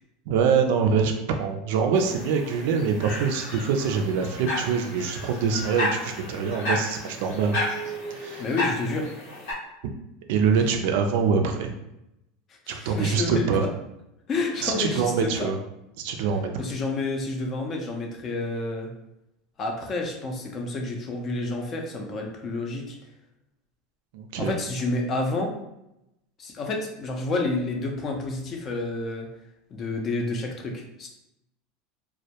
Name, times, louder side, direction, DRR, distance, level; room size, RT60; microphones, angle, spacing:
voice 1, 0.3-7.6 8.2-8.4 10.3-11.7 12.7-13.6 14.6-15.6 16.0-16.5 24.1-24.6, right 6 dB, 70° right, 4 dB, 0.3 m, -24 dB
sound 1, 1.9-9.5, left 1 dB, 85° left, 1.1 m, -32 dB
voice 2, 8.4-9.1 12.7-13.7 14.3-15.5 16.6-18.9 19.6-23.0 24.4-25.5 26.4-29.3 29.7-31.1, left 2 dB, 30° left, 2 dB, 0.4 m, -29 dB
2.2 x 2.1 x 2.8 m, 0.86 s
supercardioid pair, 140°, 0 cm